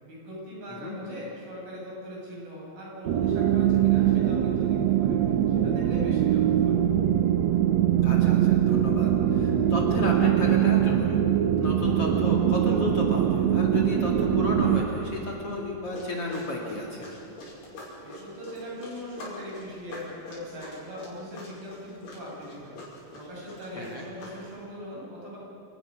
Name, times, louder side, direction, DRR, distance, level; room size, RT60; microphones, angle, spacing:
voice 1, 0.0-6.8 18.0-25.4, equal, 65° right, -4 dB, 8.6 m, -41 dB
sound 1, 3.0-14.8, right 10 dB, 85° right, 1.5 m, -22 dB
voice 2, 8.0-11.2 11.6-17.1 23.8-24.1, left 2 dB, 40° left, -1 dB, 2.8 m, -32 dB
sound 2, 15.8-24.6, left 2 dB, 85° left, 7.7 m, -45 dB
29.0 x 19.0 x 6.2 m, 2.6 s
omnidirectional pair, 4.4 m